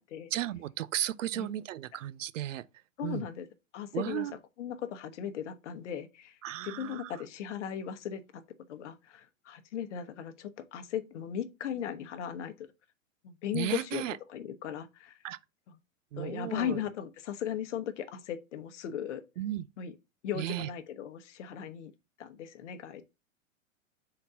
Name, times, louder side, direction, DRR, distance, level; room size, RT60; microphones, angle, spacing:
voice 1, 0.3-2.7 3.0-3.3 3.9-4.3 6.4-7.1 13.5-14.2 15.2-15.4 16.1-16.8 19.4-19.7 20.3-20.7, right 13 dB, 70° right, 0.5 m, -34 dB
voice 2, 3.0-3.5 3.7-4.3 4.6-6.4 6.6-8.4 8.7-12.7 13.2-14.0 14.3-15.2 16.2-19.2 19.8-19.9 20.2-21.9 22.2-23.0, left 9 dB, 65° left, 1.1 m, -37 dB
4.3 x 3.9 x 5.5 m
hypercardioid pair, 115°, 39 cm